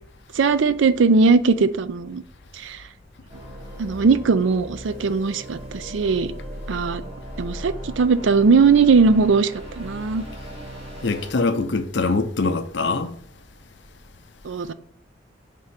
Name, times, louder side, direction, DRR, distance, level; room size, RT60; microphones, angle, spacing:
voice 1, 0.3-2.2 2.5-2.8 3.8-6.3 6.7-7.0 7.4-9.5 9.8-10.2 14.4-14.7, right 4 dB, 80° right, 0.5 m, -19 dB
sound 1, 3.3-11.3, equal, 30° right, 3.0 m, -37 dB
voice 2, 11.0-13.1, left 3 dB, 65° left, 0.6 m, -23 dB
5.3 x 3.7 x 5.7 m
head